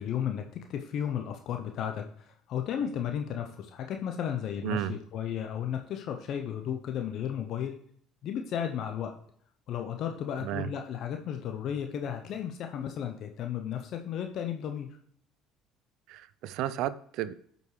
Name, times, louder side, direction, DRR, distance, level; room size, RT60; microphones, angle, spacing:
voice 1, 0.0-7.7 8.2-9.1 9.7-14.9, left 9 dB, 60° left, 0.7 m, -34 dB
voice 2, 4.6-5.0 10.4-10.7 16.1-17.3, right 12 dB, 65° right, 0.4 m, -33 dB
12.5 x 5.3 x 3.2 m
hypercardioid pair, 65°, 0 cm